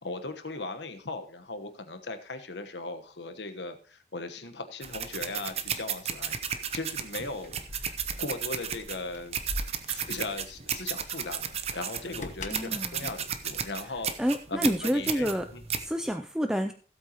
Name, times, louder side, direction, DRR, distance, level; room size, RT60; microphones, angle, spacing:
voice 1, 0.0-14.1 14.5-15.6, left 3 dB, 85° left, 8 dB, 1.2 m, -38 dB
sound 1, 4.8-15.9, right 8 dB, 35° right, 0.7 m, -34 dB
Keys jangling, 7.4-14.2, left 1 dB, 45° left, 1.1 m, -43 dB
voice 2, 12.5-13.1 14.2-15.5 15.8-16.7, equal, 5° right, 6 dB, 0.4 m, -28 dB
16.0 x 8.2 x 3.0 m, 0.41 s
head